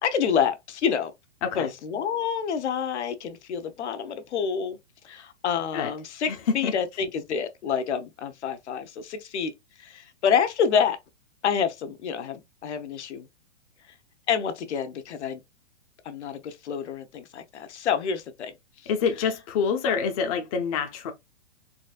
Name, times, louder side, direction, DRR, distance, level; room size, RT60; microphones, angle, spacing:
voice 1, 0.0-1.1 1.6-4.8 5.0-9.5 9.8-11.0 11.4-13.3 14.3-15.4 16.0-18.5 19.9-20.0, left 7 dB, 70° left, 0.9 m, -28 dB
voice 2, 6.3-6.7 18.9-21.1, left 6 dB, 30° left, 0.5 m, -26 dB
4.0 x 2.5 x 2.3 m
hypercardioid pair, 150°, 35 cm